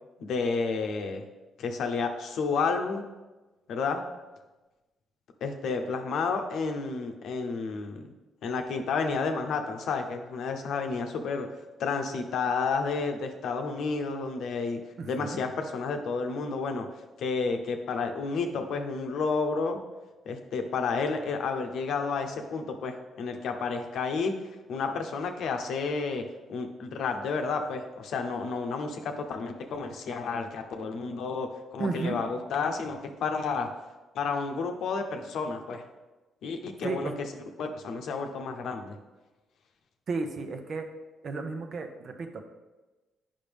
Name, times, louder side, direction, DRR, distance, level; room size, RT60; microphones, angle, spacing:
voice 1, 0.2-1.2 1.6-3.1 3.7-4.0 5.4-8.1 8.4-11.5 11.8-14.8 15.1-16.9 17.2-19.8 20.3-24.3 24.7-26.2 26.5-33.7 34.1-35.8 36.4-37.1 37.6-38.9, left 4 dB, 75° left, 5 dB, 0.8 m, -31 dB
voice 2, 15.0-15.4 31.8-32.2 36.8-37.1 40.1-40.8 41.2-42.4, right 4 dB, 55° right, 6 dB, 0.8 m, -33 dB
8.7 x 5.5 x 3.5 m, 1.1 s
cardioid pair, 90°, 0 cm